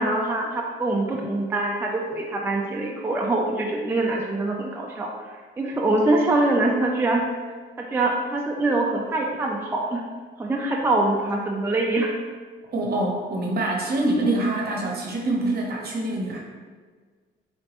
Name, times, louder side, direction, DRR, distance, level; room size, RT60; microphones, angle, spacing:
voice 1, 0.0-7.2 7.8-10.0 10.4-12.1, right 2 dB, 10° right, -1 dB, 0.3 m, -24 dB
voice 2, 12.7-16.4, right 2 dB, 50° right, -1 dB, 0.8 m, -25 dB
3.3 x 3.0 x 2.9 m, 1.5 s
cardioid pair, 90°, 20 cm